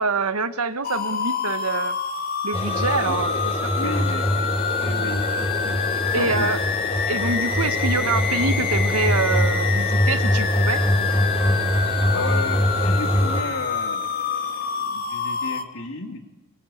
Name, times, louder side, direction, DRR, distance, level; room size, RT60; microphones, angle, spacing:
voice 1, 0.0-2.0 2.4-4.0 6.1-6.6 7.1-10.9, right 4 dB, 85° right, 12 dB, 1.4 m, -26 dB
sound 1, 0.8-15.6, left 6 dB, 45° left, 1.9 m, -27 dB
sound 2, 2.5-13.4, equal, 25° left, 4.6 m, -23 dB
voice 2, 3.7-6.5 12.1-16.2, left 3 dB, 65° left, 5 dB, 3.0 m, -34 dB
23.5 x 23.5 x 8.6 m, 1.1 s
head